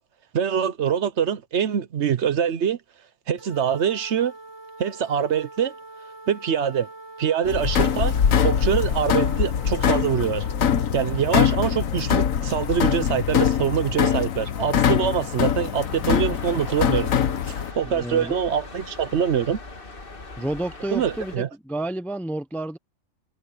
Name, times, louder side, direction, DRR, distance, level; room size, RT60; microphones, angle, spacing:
voice 1, 0.3-2.8 3.3-4.3 4.8-5.7 6.3-6.9 7.2-8.1 8.4-10.4 10.9-17.1 17.5-19.6 20.9-21.5, right 8 dB, 60° right, 1.1 m, -24 dB
sound 1, 3.4-11.9, right 3 dB, 20° left, 2.6 m, -43 dB
sound 2, 7.5-17.7, left 8 dB, 90° left, 1.4 m, -23 dB
sound 3, 15.8-21.4, left 3 dB, 45° left, 2.2 m, -40 dB
voice 2, 17.9-18.4 20.4-22.8, right 1 dB, ahead, 0.5 m, -30 dB
omnidirectional pair, 1.3 m